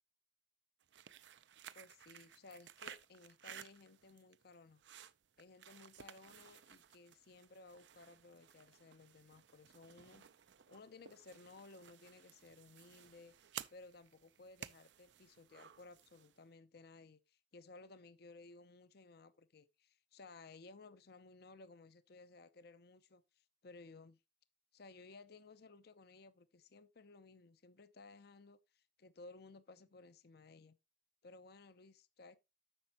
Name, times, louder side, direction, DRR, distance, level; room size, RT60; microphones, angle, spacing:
sound 1, 0.8-16.4, right 9 dB, 70° right, 0.5 m, -56 dB
voice 1, 1.7-4.8 5.4-10.2 10.7-13.3 13.7-24.2 24.7-30.8 31.2-32.4, left 3 dB, 60° left, 0.6 m, -58 dB
10.0 x 6.9 x 2.9 m
head